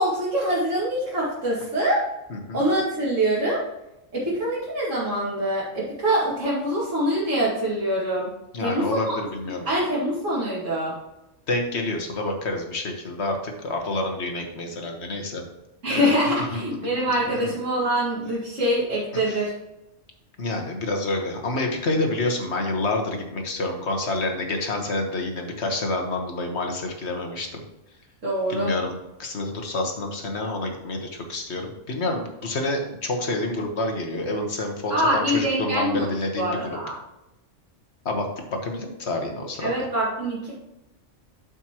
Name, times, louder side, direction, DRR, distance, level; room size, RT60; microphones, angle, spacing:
voice 1, 0.0-2.0 2.5-3.6 4.1-8.3 8.6-9.2 9.7-10.9 15.8-19.5 28.2-28.7 34.9-36.1 36.4-36.9 39.6-40.5, right 1 dB, 80° right, -8 dB, 2.5 m, -24 dB
voice 2, 2.3-2.6 8.5-9.6 11.5-15.4 15.9-16.1 16.5-16.6 17.3-17.5 19.1-19.4 20.4-27.6 28.5-28.9 29.2-36.5 38.0-39.7, left 2 dB, 60° left, 3 dB, 1.6 m, -28 dB
12.0 x 5.6 x 3.0 m, 0.93 s
omnidirectional pair, 1.3 m